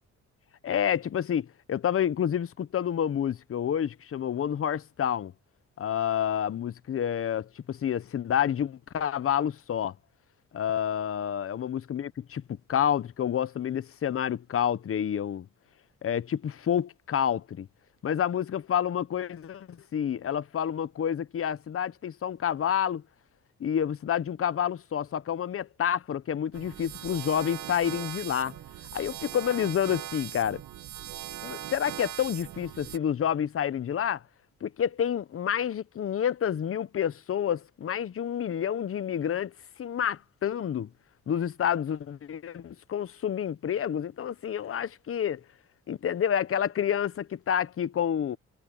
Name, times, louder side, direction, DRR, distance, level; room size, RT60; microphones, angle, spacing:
voice 1, 0.6-5.3 5.8-9.9 10.5-15.5 16.0-17.7 18.0-23.0 23.6-28.5 28.9-30.6 31.4-34.2 34.6-39.5 39.8-40.9 41.3-45.4 45.9-48.4, left 9 dB, 45° left, 1.0 m, -29 dB
sound 1, 26.5-33.0, right 12 dB, 75° right, 1.9 m, -40 dB
cardioid pair, 90°, 30 cm